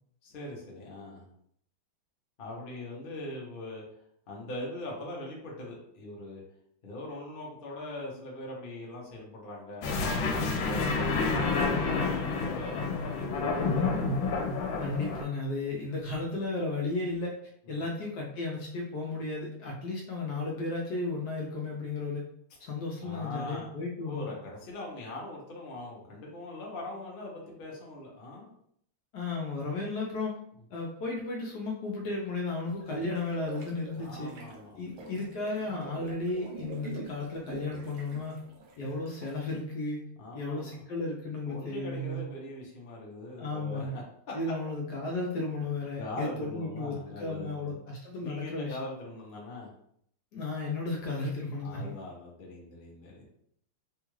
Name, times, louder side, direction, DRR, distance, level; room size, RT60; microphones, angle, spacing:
voice 1, 0.2-1.3 2.4-3.8 4.3-6.4 6.8-9.9 10.5-14.0 17.7-17.9 23.0-23.7 24.0-28.5 34.0-34.9 40.2-40.7 41.5-44.0 46.0-47.8 48.2-49.7 51.6-53.3, left 1 dB, 50° left, -3 dB, 0.6 m, -41 dB
sound 1, 9.8-15.2, left 4 dB, 90° left, 1.4 m, -29 dB
voice 2, 14.8-17.3 17.7-22.2 22.6-24.2 29.1-30.4 30.7-34.3 34.8-38.4 38.8-40.0 40.3-42.2 43.4-44.0 44.3-48.8 50.3-51.9, left 3 dB, 70° left, -1 dB, 1.0 m, -34 dB
sound 2, 32.7-39.4, right 4 dB, 90° right, 1.4 m, -46 dB
3.5 x 2.3 x 3.1 m, 0.68 s
omnidirectional pair, 2.1 m